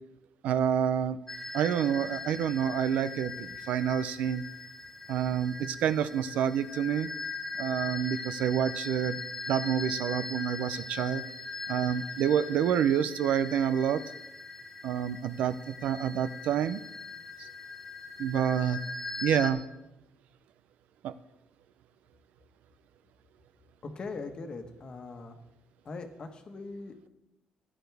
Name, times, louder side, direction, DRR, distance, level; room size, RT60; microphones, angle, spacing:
voice 1, 0.4-1.2 1.5-4.4 5.1-7.1 7.6-9.2 9.5-11.2 11.7-14.0 14.8-16.8 17.4-17.5 18.2-18.8 19.2-19.6 21.0-21.1, right 9 dB, 85° right, 14 dB, 0.5 m, -28 dB
sound 1, 1.3-19.5, left 4 dB, 10° left, 1.0 m, -40 dB
voice 2, 23.8-25.4 25.8-27.1, left 3 dB, 40° left, 6 dB, 1.3 m, -41 dB
15.0 x 10.0 x 3.4 m, 0.90 s
cardioid pair, 130°, 2 cm